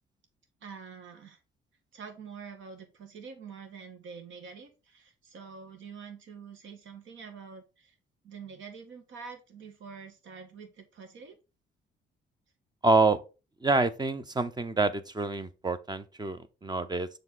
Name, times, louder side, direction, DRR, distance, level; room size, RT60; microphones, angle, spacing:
voice 1, 0.6-1.4 1.9-7.9 8.2-11.4, right 6 dB, 75° right, 1.9 m, -46 dB
voice 2, 12.8-13.2 13.6-17.1, right 3 dB, 20° right, 0.8 m, -27 dB
6.3 x 4.8 x 3.9 m
cardioid pair, 90°, 20 cm